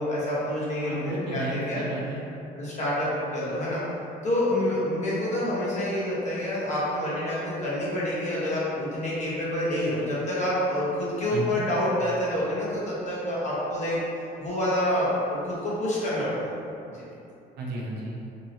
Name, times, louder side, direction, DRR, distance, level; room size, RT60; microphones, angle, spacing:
voice 1, 0.0-1.8 2.5-3.8 4.2-14.0 14.4-17.0, left 1 dB, 45° left, -8 dB, 1.1 m, -27 dB
voice 2, 0.8-2.2 11.3-11.7 17.6-18.2, right 1 dB, 75° right, -4 dB, 0.7 m, -33 dB
2.9 x 2.7 x 2.8 m, 2.7 s
cardioid pair, 110°, 17 cm